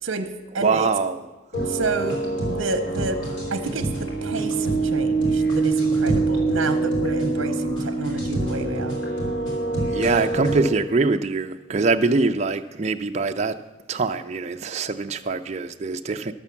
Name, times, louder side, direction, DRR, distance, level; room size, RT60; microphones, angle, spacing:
voice 1, 0.0-0.9 1.6-2.2 2.5-3.2 3.5-9.0, right 3 dB, 65° right, 0.8 m, -29 dB
voice 2, 0.6-1.2 9.9-13.6 13.9-16.3, right 3 dB, 35° right, 0.4 m, -23 dB
sound 1, 1.5-10.6, right 3 dB, 60° left, 4.0 m, -24 dB
11.5 x 7.1 x 6.9 m
head